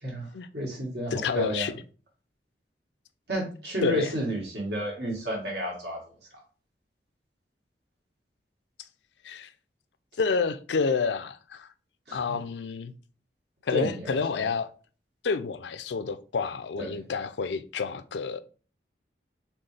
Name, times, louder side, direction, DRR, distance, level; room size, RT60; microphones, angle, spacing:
voice 1, 0.0-1.7 3.3-6.0 12.1-12.4 13.7-14.5 16.8-17.0, equal, 75° right, 2.0 m, -31 dB
voice 2, 1.1-1.7 3.8-4.1 9.2-9.5 10.2-11.7 12.1-12.9 13.7-14.7 15.2-18.4, left 5 dB, 85° left, 0.4 m, -29 dB
4.4 x 3.6 x 3.3 m
head